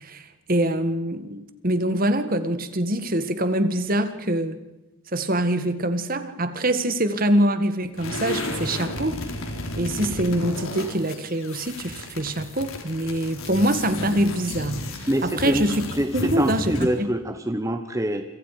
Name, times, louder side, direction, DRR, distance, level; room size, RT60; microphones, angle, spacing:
voice 1, 0.0-4.6 5.1-9.2 9.7-15.8 16.1-17.1, right 1 dB, 40° right, 10 dB, 1.7 m, -24 dB
sound 1, 8.0-17.0, left 2 dB, 80° left, 4.1 m, -33 dB
voice 2, 15.1-15.6 16.0-18.2, right 1 dB, 15° right, 7 dB, 1.1 m, -25 dB
28.5 x 26.0 x 5.1 m, 1.0 s
head